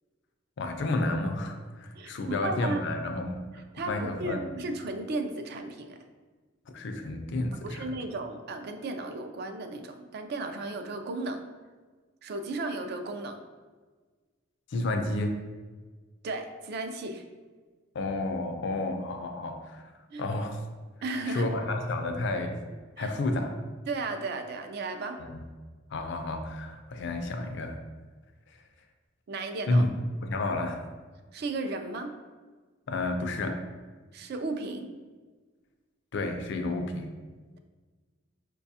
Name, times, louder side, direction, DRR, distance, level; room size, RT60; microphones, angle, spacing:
voice 1, 0.6-4.5 6.7-7.9 14.7-15.4 17.9-19.8 20.2-20.6 21.3-22.6 23.0-23.5 25.2-25.4 25.9-27.8 29.7-29.9 30.2-30.9 32.9-33.6 36.1-37.1, left 2 dB, 65° left, 5 dB, 0.4 m, -31 dB
voice 2, 2.0-2.8 3.7-6.0 7.6-11.4 12.2-13.4 16.2-17.2 20.1-20.2 21.0-21.5 23.0-23.1 23.9-25.2 29.3-29.9 31.3-32.1 34.1-34.9, right 2 dB, 55° right, 6 dB, 0.3 m, -34 dB
4.7 x 2.3 x 2.7 m, 1.4 s
head